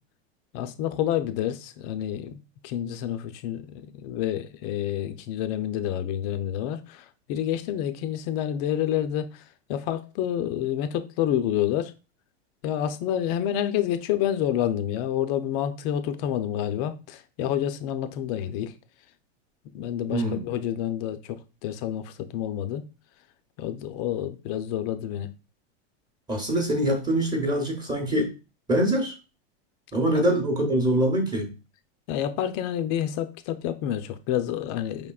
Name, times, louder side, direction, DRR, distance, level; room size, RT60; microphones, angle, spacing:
voice 1, 0.5-2.3 2.6-9.4 9.7-11.9 12.6-18.7 19.7-22.8 23.6-25.3 30.1-30.3 32.1-35.1, left 10 dB, 40° left, 0.5 m, -28 dB
voice 2, 26.3-28.3 28.7-29.1 29.9-31.5, right 1 dB, 10° right, 0.9 m, -24 dB
5.0 x 3.6 x 2.3 m
supercardioid pair, 150°, 32 cm